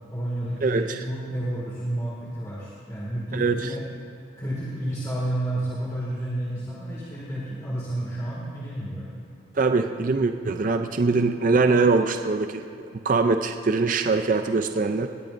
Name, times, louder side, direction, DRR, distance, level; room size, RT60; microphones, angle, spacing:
voice 1, 0.1-3.8 4.4-9.1, right 1 dB, 15° left, -7 dB, 2.1 m, -30 dB
voice 2, 0.6-1.0 3.3-3.8 9.5-15.1, right 3 dB, 40° right, 6 dB, 0.4 m, -23 dB
19.5 x 19.0 x 2.6 m, 2.3 s
head